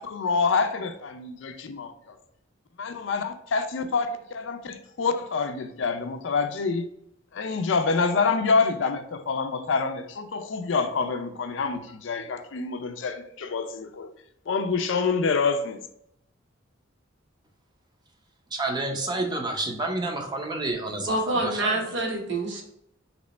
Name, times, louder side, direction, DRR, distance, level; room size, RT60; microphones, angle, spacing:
voice 1, 0.0-2.2 2.8-6.9 7.3-14.1 14.5-15.8, left 4 dB, 65° left, 0.4 m, -27 dB
voice 2, 18.5-21.9, right 2 dB, 20° right, 0.6 m, -29 dB
voice 3, 21.0-22.6, right 2 dB, 60° right, 1.0 m, -26 dB
3.2 x 2.9 x 4.1 m
head